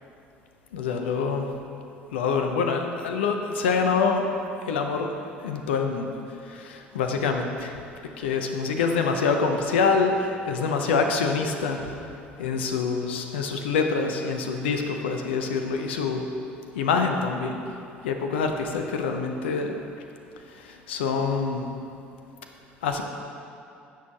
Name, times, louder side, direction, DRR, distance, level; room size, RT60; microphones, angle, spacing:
voice 1, 0.7-1.5 2.1-4.3 4.6-6.1 6.4-12.1 12.4-16.3 16.7-17.6 18.0-19.7 20.5-21.7 22.8-23.0, left 5 dB, 75° left, 4 dB, 0.8 m, -26 dB
18.5 x 6.5 x 3.0 m, 2.6 s
figure-of-eight pair, 60°, 6 cm